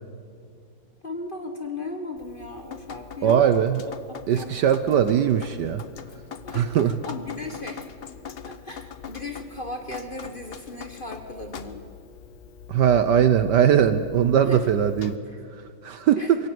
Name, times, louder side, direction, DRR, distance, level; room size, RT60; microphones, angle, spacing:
voice 1, 1.0-3.6 4.1-4.6 6.5-7.9 8.2-11.8 14.4-14.6 15.2-15.4 16.2-16.3, left 2 dB, 30° left, 5 dB, 1.2 m, -36 dB
Drip, 2.2-15.2, left 7 dB, 90° left, 0.5 m, -42 dB
voice 2, 3.2-3.8 4.3-5.8 6.5-6.9 12.7-15.2 15.8-16.4, right 9 dB, 65° right, 12 dB, 1.2 m, -20 dB
22.5 x 16.5 x 9.4 m, 2.2 s
omnidirectional pair, 2.3 m